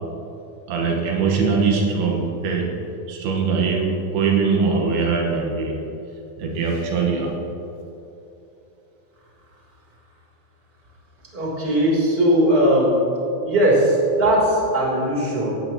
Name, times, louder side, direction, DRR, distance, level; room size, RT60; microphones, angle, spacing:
voice 1, 0.7-5.9 6.4-7.4, right 5 dB, 75° right, 0 dB, 3.1 m, -22 dB
voice 2, 11.3-13.0 13.4-15.6, right 1 dB, 15° right, -4 dB, 3.1 m, -19 dB
17.5 x 15.5 x 3.0 m, 3.0 s
omnidirectional pair, 4.6 m